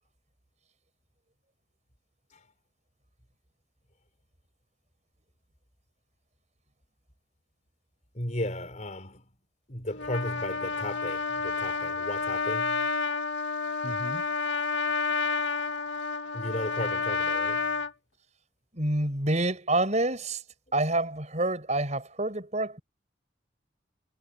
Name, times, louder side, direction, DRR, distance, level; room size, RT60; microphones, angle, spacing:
voice 1, 8.1-9.3 9.7-12.9 16.3-17.7, left 1 dB, 40° left, 4.3 m, -35 dB
Trumpet, 9.9-17.9, left 4 dB, 80° left, 2.0 m, -30 dB
voice 2, 13.8-14.2 18.7-20.4 20.7-22.8, right 2 dB, 40° right, 6.1 m, -28 dB
head